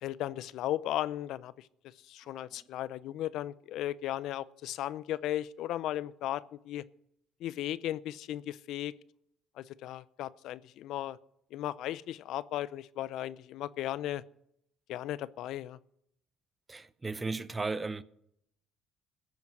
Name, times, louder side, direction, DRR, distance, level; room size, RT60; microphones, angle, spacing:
voice 1, 0.0-1.7 2.1-6.8 7.4-8.9 9.6-11.2 11.5-14.2 14.9-15.8, left 13 dB, 70° left, 0.6 m, -36 dB
voice 2, 16.7-18.0, right 3 dB, 20° right, 0.8 m, -35 dB
15.5 x 9.2 x 6.1 m
cardioid pair, 95°, 0 cm